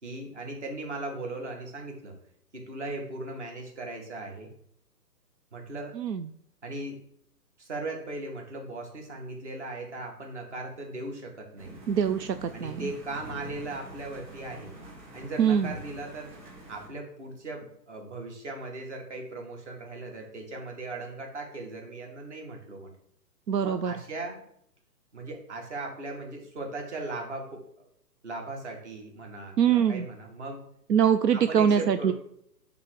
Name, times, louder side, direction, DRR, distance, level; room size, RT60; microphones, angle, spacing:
voice 1, 0.0-2.1 2.5-4.5 5.5-6.0 6.6-7.0 7.6-11.8 12.5-14.7 15.1-16.4 16.7-22.9 23.6-24.4 25.1-27.6 28.2-30.6 31.3-32.1, right 2 dB, 45° right, 1 dB, 2.1 m, -38 dB
voice 2, 6.0-6.3 11.9-12.9 15.4-15.7 23.5-23.9 29.6-30.1 30.9-32.1, right 8 dB, 80° right, 10 dB, 0.6 m, -24 dB
sound 1, 11.6-16.9, right 1 dB, 20° right, 2.3 m, -46 dB
9.1 x 3.7 x 6.5 m, 0.71 s
hypercardioid pair, 175°, 49 cm